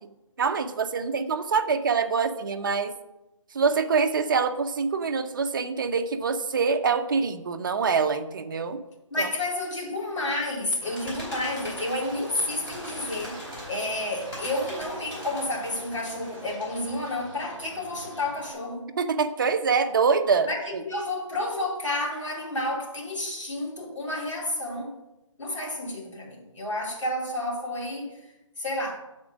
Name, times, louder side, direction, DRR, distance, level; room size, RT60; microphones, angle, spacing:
voice 1, 0.4-2.9 3.5-8.8 9.2-9.3 19.0-20.5 20.7-20.8, right 5 dB, 40° right, 7 dB, 0.6 m, -25 dB
voice 2, 9.1-18.9 20.4-24.9 25.4-28.3 28.6-29.0, left 1 dB, 65° left, -2 dB, 2.6 m, -30 dB
Bird, 10.8-18.5, equal, 15° left, 3.1 m, -41 dB
8.4 x 4.4 x 6.1 m, 0.98 s
figure-of-eight pair, 160°, 17 cm